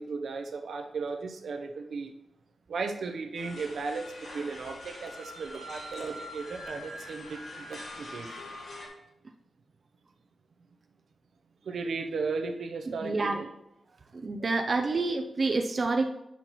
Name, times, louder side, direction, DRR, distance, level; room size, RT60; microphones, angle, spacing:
voice 1, 0.0-2.1 2.7-8.3 11.6-13.5 14.4-14.5, right 4 dB, 75° right, 5 dB, 0.7 m, -36 dB
sound 1, 3.3-8.9, left 1 dB, 75° left, 1.9 m, -43 dB
voice 2, 13.0-13.4 14.2-16.1, right 3 dB, 40° right, 4 dB, 0.4 m, -28 dB
8.2 x 5.7 x 3.0 m, 0.89 s
wide cardioid pair, 130°, 0 cm